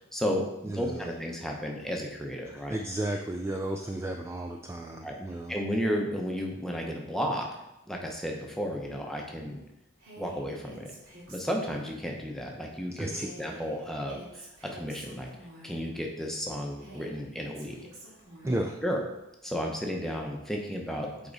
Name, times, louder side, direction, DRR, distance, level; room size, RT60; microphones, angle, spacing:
voice 1, 0.1-2.8 5.0-5.1 5.5-7.5 7.9-9.6 10.2-10.9 11.3-15.3 15.6-17.8 18.4-19.0 19.4-21.3, equal, ahead, 0 dB, 0.8 m, -33 dB
voice 2, 0.6-1.1 2.7-5.5 13.0-13.3 18.4-18.7, right 1 dB, 15° right, 3 dB, 0.3 m, -33 dB
Female speech woman speaking, 10.0-12.1 13.1-16.0 16.8-18.7, right 1 dB, 70° right, 2.4 m, -48 dB
8.4 x 3.6 x 4.0 m, 0.94 s
head